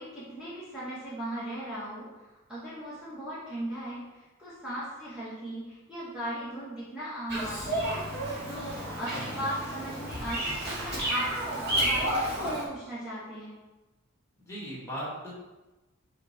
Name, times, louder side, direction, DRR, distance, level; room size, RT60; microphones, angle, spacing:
voice 1, 0.0-2.2 2.5-7.9 8.5-10.5 10.8-13.6, right 1 dB, 5° right, -12 dB, 1.7 m, -37 dB
Bird vocalization bird call bird song, 7.3-12.6, right 1 dB, 55° right, 2.0 m, -31 dB
voice 2, 9.1-9.5 14.4-15.3, equal, 15° left, -6 dB, 2.2 m, -38 dB
5.8 x 4.3 x 4.4 m, 1.1 s
head